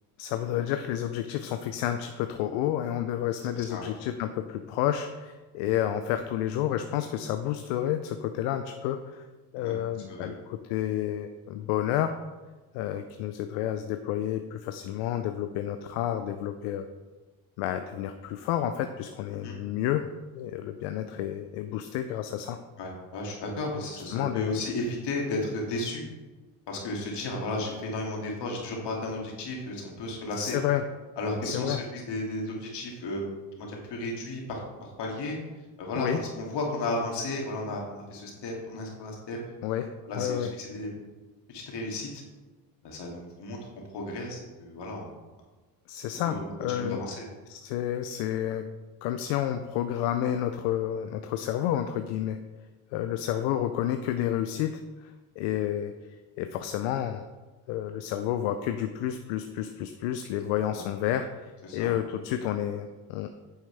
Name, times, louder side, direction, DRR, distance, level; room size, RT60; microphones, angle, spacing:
voice 1, 0.2-9.2 9.5-12.2 12.7-16.8 17.6-20.0 20.3-22.6 24.1-24.6 30.4-30.8 31.4-31.8 36.0-36.2 39.6-40.5 45.9-47.0 47.5-48.6 49.0-52.4 52.9-54.7 55.0-55.9 56.4-57.2 57.7-61.3 61.7-63.3, left 11 dB, 80° left, 8 dB, 0.6 m, -30 dB
voice 2, 22.8-26.0 26.7-30.6 31.2-33.3 33.6-35.4 35.8-39.4 40.1-40.9 41.5-42.2 42.8-43.6 43.9-45.1 46.1-46.4 46.7-47.2 60.7-60.8 61.6-61.9, left 2 dB, 60° left, -1 dB, 2.7 m, -34 dB
9.1 x 7.2 x 3.4 m, 1.2 s
hypercardioid pair, 60°, 46 cm